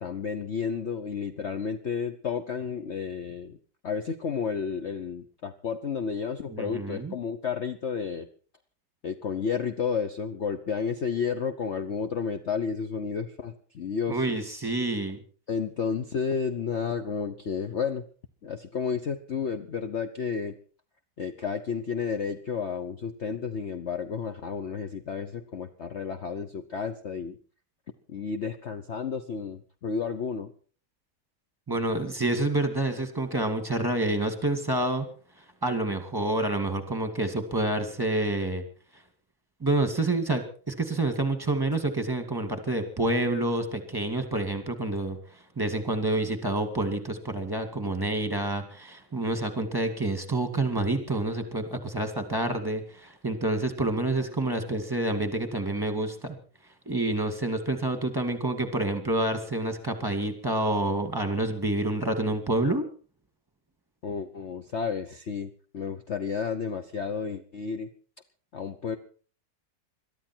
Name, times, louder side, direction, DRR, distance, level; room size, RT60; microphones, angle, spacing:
voice 1, 0.0-3.6 3.8-8.3 9.0-14.4 15.5-18.0 18.4-20.5 21.2-27.4 28.1-30.5 64.0-67.9 68.5-69.0, left 6 dB, 45° left, 7 dB, 1.1 m, -31 dB
voice 2, 6.5-7.1 14.1-15.2 31.7-35.1 35.6-38.6 39.6-45.2 45.6-56.4 56.9-62.8, right 2 dB, 10° right, 7 dB, 2.2 m, -28 dB
22.5 x 13.0 x 4.5 m, 0.41 s
omnidirectional pair, 1.9 m